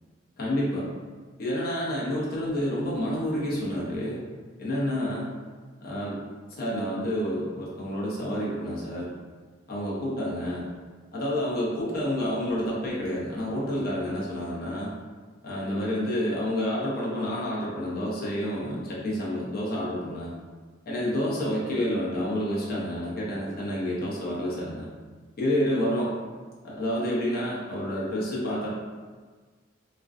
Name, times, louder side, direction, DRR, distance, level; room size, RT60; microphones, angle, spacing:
voice 1, 0.4-0.8 1.4-4.2 4.6-5.3 5.8-6.2 6.6-9.1 9.7-10.6 11.1-14.9 15.4-20.3 20.9-24.9 25.4-26.1 26.6-28.7, equal, 50° left, -6 dB, 0.7 m, -29 dB
2.5 x 2.2 x 2.3 m, 1.4 s
head